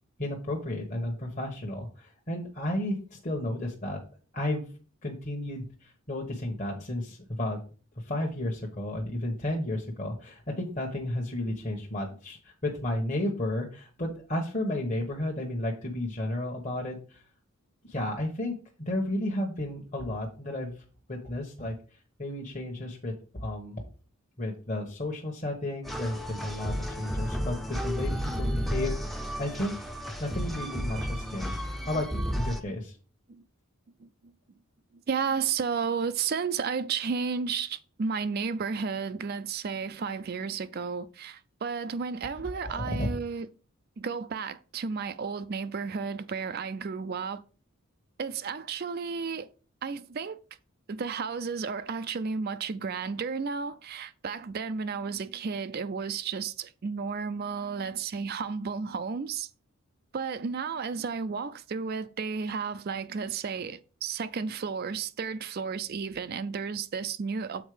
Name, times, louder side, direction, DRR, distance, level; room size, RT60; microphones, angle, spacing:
voice 1, 0.2-4.0 4.3-4.6 5.0-7.6 8.0-17.2 17.8-18.5 18.8-20.7 21.1-21.7 22.2-23.1 23.4-23.8 24.4-28.1 28.4-28.9 29.4-29.7 30.2-33.0 42.6-43.1, left 1 dB, 35° left, 1.2 m, -32 dB
sound 1, 25.8-32.6, equal, ahead, 0.6 m, -32 dB
voice 2, 34.0-34.3 35.1-43.5 44.0-47.4 48.2-49.5 49.8-50.4 50.9-59.5 60.1-67.7, right 5 dB, 45° right, 0.4 m, -33 dB
7.3 x 4.3 x 4.9 m
head